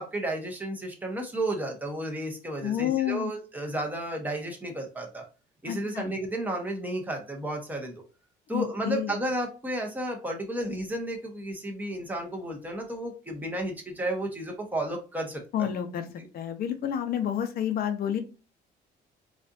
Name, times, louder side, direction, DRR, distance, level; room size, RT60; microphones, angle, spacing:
voice 1, 0.0-5.2 5.6-8.0 8.5-15.7 16.2-16.3, right 1 dB, 10° right, 1 dB, 1.1 m, -32 dB
voice 2, 2.6-3.3 5.6-6.1 8.5-9.2 15.5-16.1 16.3-18.2, left 10 dB, 60° left, 7 dB, 0.8 m, -29 dB
4.3 x 2.5 x 2.6 m, 0.34 s
cardioid pair, 110°, 17 cm